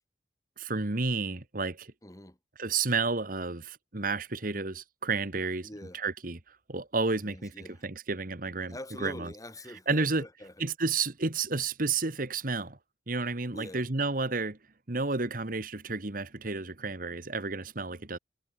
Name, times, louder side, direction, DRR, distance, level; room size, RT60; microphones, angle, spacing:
voice 1, 0.6-1.9 2.6-5.7 5.9-7.5 7.8-8.7 9.0-9.3 9.9-10.2 10.6-12.8 13.1-14.6 14.9-18.2, right 3 dB, 50° right, 1.7 m, -31 dB
voice 2, 2.0-2.4 5.6-6.0 7.2-7.9 8.7-10.6 13.5-13.9, left 1 dB, 20° left, 5.6 m, -44 dB
head